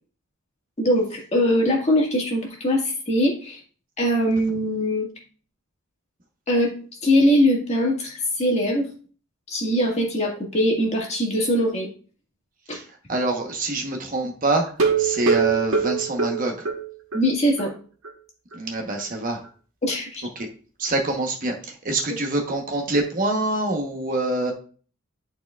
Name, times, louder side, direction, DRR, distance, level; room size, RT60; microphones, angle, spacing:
voice 1, 0.8-3.6 4.0-5.1 6.5-6.7 7.0-8.9 9.5-11.9 12.7-12.8 17.1-17.7 19.8-20.3 24.5-24.6, equal, 30° left, -1 dB, 1.7 m, -22 dB
voice 2, 13.1-14.7 15.0-16.5 18.5-19.4 20.8-21.5 21.8-24.5, right 2 dB, 40° right, 2 dB, 1.0 m, -25 dB
sound 1, 14.7-17.3 17.6-17.7 18.0-18.1 18.5-18.6, right 5 dB, 70° right, 1.3 m, -23 dB
10.5 x 4.4 x 2.3 m, 0.40 s
head